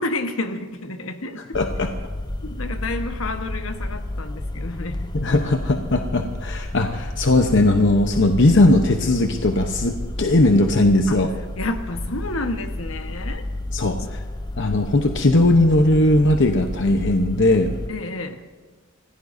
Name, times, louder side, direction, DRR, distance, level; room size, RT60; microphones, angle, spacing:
voice 1, 0.0-1.4 2.4-5.1 11.1-11.2 11.6-13.4 14.0-14.2 17.9-18.4, left 2 dB, 80° left, 6 dB, 1.3 m, -30 dB
voice 2, 1.5-1.9 5.1-11.3 13.7-14.2 14.6-17.8, left 2 dB, 60° left, 5 dB, 0.9 m, -18 dB
sound 1, 1.5-17.9, left 1 dB, 20° left, 0.5 m, -31 dB
27.0 x 16.5 x 2.7 m, 1.4 s
head